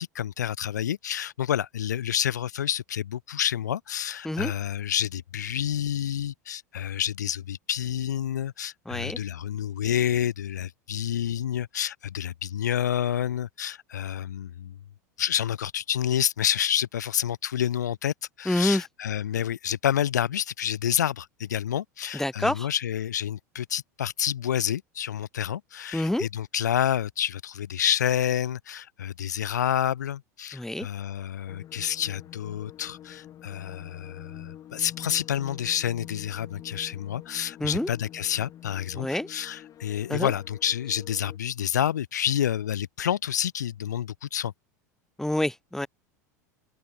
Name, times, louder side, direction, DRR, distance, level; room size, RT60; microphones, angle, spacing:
voice 1, 0.0-14.7 15.2-44.5, left 10 dB, 75° left, 0.8 m, -29 dB
voice 2, 8.8-9.2 18.4-18.8 22.1-22.7 25.9-26.3 30.5-30.9 37.6-37.9 38.9-39.3 40.1-40.3 45.2-45.9, left 1 dB, 5° left, 4.8 m, -27 dB
sound 1, 31.5-41.4, left 11 dB, 40° left, 7.8 m, -46 dB
figure-of-eight pair, 80°, 9 cm